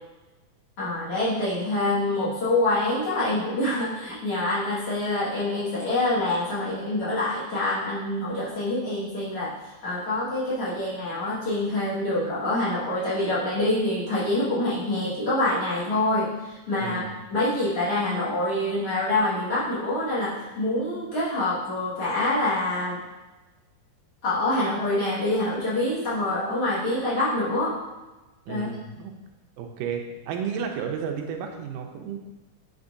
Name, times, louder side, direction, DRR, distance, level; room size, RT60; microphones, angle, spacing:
voice 1, 0.8-9.5 9.8-23.0 24.2-27.8 28.5-28.7, left 2 dB, 50° left, -9 dB, 2.5 m, -26 dB
voice 2, 16.8-17.1 28.5-29.1 29.6-32.2, right 7 dB, 85° right, 3 dB, 2.2 m, -32 dB
8.3 x 4.3 x 2.6 m, 1.1 s
omnidirectional pair, 3.6 m